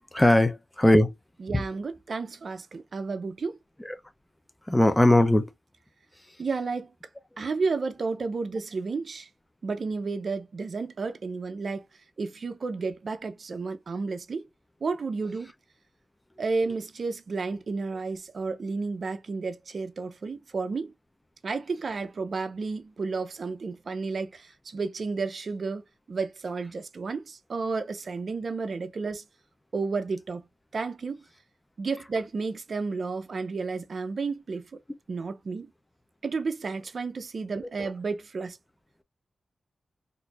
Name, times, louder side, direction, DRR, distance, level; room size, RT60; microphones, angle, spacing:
voice 1, 0.1-1.1 1.5-1.6 3.8-3.9 4.7-5.5, left 1 dB, 10° left, 0.5 m, -20 dB
voice 2, 1.4-3.6 6.4-6.9 7.4-9.3 9.6-11.8 12.2-14.4 14.8-15.5 16.4-20.9 21.4-25.8 26.1-29.2 29.7-30.4 30.7-31.2 31.8-34.8 35.1-35.7 36.2-38.6, right 4 dB, 60° right, 0.5 m, -32 dB
4.3 x 2.6 x 2.4 m
cardioid pair, 80°, 0 cm